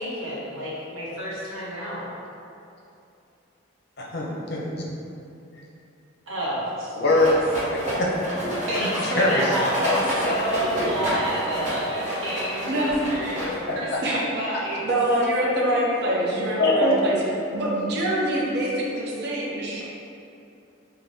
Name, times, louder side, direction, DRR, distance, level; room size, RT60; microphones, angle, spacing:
voice 1, 0.0-2.1 6.3-6.9 8.7-14.9 15.7-16.1, equal, 80° right, -7 dB, 0.9 m, -30 dB
voice 2, 4.0-4.7 6.9-7.3 8.0-8.2 8.4-9.5 9.8-10.0 16.6-17.0, left 2 dB, 50° left, -3 dB, 0.6 m, -23 dB
Rattle, 7.1-13.8, equal, 35° right, 1.0 m, -29 dB
voice 3, 14.8-17.2 17.5-19.8, right 1 dB, 50° right, -4 dB, 0.6 m, -25 dB
3.9 x 2.2 x 3.4 m, 2.7 s
head